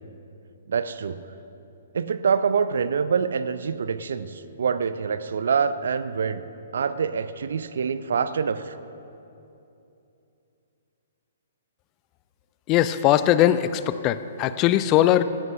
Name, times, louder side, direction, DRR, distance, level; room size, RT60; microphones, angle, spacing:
voice 1, 0.7-1.2 1.9-6.4 6.7-8.8, right 6 dB, 60° right, 13 dB, 0.5 m, -25 dB
voice 2, 12.7-15.2, left 12 dB, 25° left, 13 dB, 0.4 m, -20 dB
16.5 x 16.0 x 2.6 m, 2.8 s
figure-of-eight pair, 120°, 0 cm